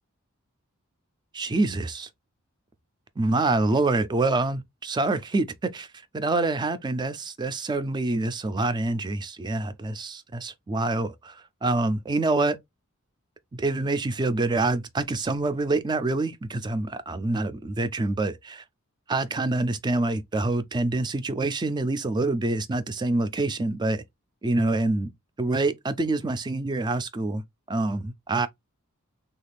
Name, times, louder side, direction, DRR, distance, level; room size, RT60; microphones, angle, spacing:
voice 1, 1.3-2.1 3.2-5.9 6.1-12.6 13.5-18.6 19.1-24.0 24.4-25.1 25.4-27.4 27.7-28.5, right 2 dB, 20° right, 0.3 m, -26 dB
3.2 x 2.4 x 3.3 m
head